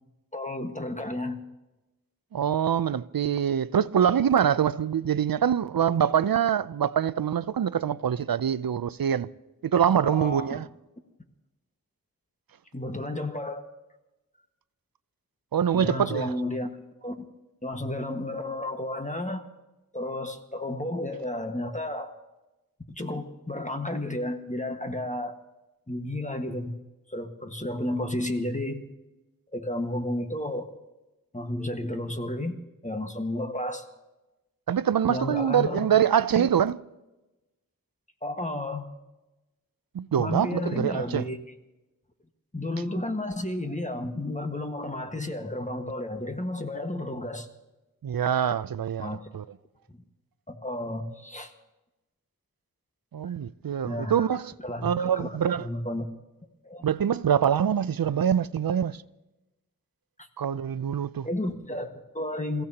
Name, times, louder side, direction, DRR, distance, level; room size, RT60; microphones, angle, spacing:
voice 1, 0.3-1.4 10.0-10.6 12.7-13.7 15.7-16.8 17.0-17.2 17.6-19.4 19.9-22.1 22.9-25.4 25.9-26.7 27.1-28.8 29.5-30.7 31.3-32.6 32.8-33.9 35.1-35.9 36.3-36.5 38.2-38.9 40.2-41.4 42.5-47.5 49.0-49.3 50.5-51.5 53.9-54.3 54.6-56.1 56.6-56.8 60.2-60.3 61.2-62.6, left 1 dB, 20° left, 1.6 m, -32 dB
voice 2, 2.3-9.3 9.6-10.7 15.5-16.3 34.7-36.8 39.9-41.2 48.0-49.4 53.1-54.5 54.8-55.7 56.8-59.0 60.4-61.3, right 8 dB, 75° right, 0.5 m, -24 dB
29.0 x 15.5 x 2.9 m
wide cardioid pair, 45°, 35 cm